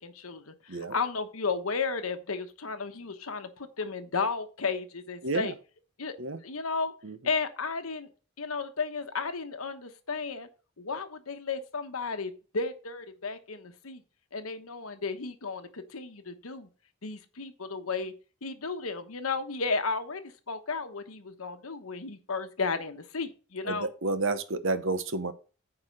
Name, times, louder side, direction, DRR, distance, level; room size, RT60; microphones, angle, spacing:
voice 1, 0.0-5.5 6.0-6.1 6.4-6.9 7.2-8.1 8.4-10.5 10.8-14.0 14.3-16.7 17.0-18.1 18.4-23.9, left 4 dB, 85° left, 9 dB, 1.1 m, -33 dB
voice 2, 5.2-5.5 6.2-6.4 7.0-7.2 23.7-25.3, right 3 dB, 65° right, 11 dB, 1.0 m, -30 dB
9.7 x 4.4 x 6.5 m, 0.36 s
head